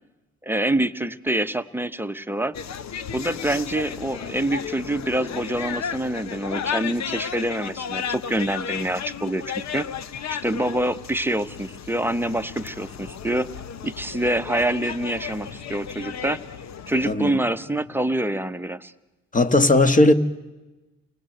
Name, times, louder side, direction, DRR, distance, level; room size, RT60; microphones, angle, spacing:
voice 1, 0.4-2.6 3.1-9.9 10.3-13.5 13.8-16.4 16.9-18.9, right 1 dB, 5° right, 1.0 m, -26 dB
sound 1, 2.5-17.2, left 7 dB, 65° left, 1.1 m, -34 dB
voice 2, 17.1-17.4 19.3-20.1, left 2 dB, 25° left, 1.7 m, -17 dB
30.0 x 21.0 x 8.0 m
cardioid pair, 90°, 30 cm